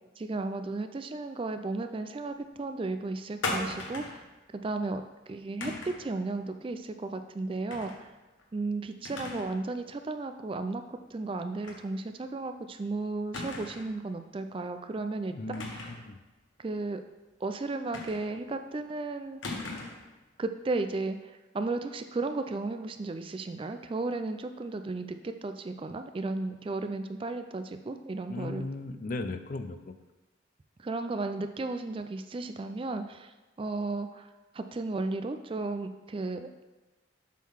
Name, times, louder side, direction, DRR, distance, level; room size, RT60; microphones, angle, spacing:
voice 1, 0.2-4.2 4.5-5.0 5.3-8.1 8.5-15.8 16.6-17.0 17.4-19.6 20.4-28.6 30.8-33.3 33.6-34.3 34.5-36.5, right 3 dB, 25° right, 8 dB, 0.3 m, -34 dB
sound 1, 3.4-4.2 5.6-6.1 7.7-8.0 8.4-8.5 9.0-9.6 9.9-10.0 11.6-11.8 12.2-12.3 13.3-14.0 15.5-16.1 17.9-18.5 19.4-20.1, left 2 dB, 80° left, 1.2 m, -37 dB
voice 2, 15.3-16.2 28.3-29.9, left 2 dB, 45° left, 9 dB, 0.5 m, -37 dB
7.4 x 3.8 x 5.6 m, 1.2 s
head